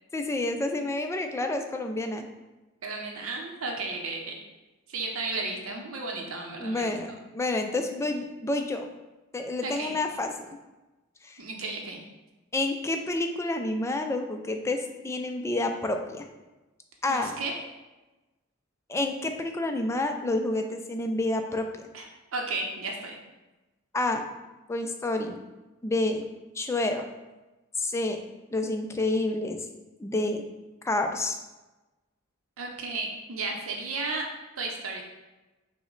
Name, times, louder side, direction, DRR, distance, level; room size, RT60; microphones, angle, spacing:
voice 1, 0.1-2.3 6.6-8.9 9.3-10.6 11.2-11.4 12.5-16.2 17.0-17.4 18.9-21.8 23.9-24.3 24.7-25.4 25.8-26.2 26.6-27.1 27.8-28.2 28.5-29.6 30.0-30.4 30.8-31.4, left 2 dB, 15° left, 5 dB, 0.3 m, -29 dB
voice 2, 2.8-4.4 4.9-7.2 9.6-9.9 11.4-12.0 17.1-17.6 21.9-22.1 22.3-23.2 32.6-34.2 34.6-35.0, right 3 dB, 80° right, 1 dB, 0.6 m, -33 dB
5.8 x 2.1 x 3.8 m, 1.1 s
head